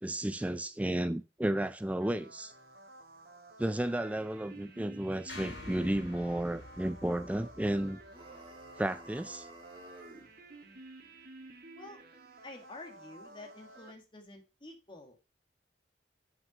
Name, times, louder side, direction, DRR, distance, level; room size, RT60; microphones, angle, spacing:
voice 1, 0.0-2.5 3.6-8.0 8.8-9.5, right 1 dB, 10° right, 0.3 m, -33 dB
sound 1, 2.0-13.9, right 2 dB, 55° right, 2.2 m, -53 dB
sound 2, 5.3-9.6, left 2 dB, 90° left, 3.2 m, -49 dB
sound 3, 8.1-10.3, right 1 dB, 30° right, 1.8 m, -52 dB
voice 2, 12.4-15.3, left 2 dB, 25° left, 1.8 m, -49 dB
8.0 x 5.8 x 5.0 m
head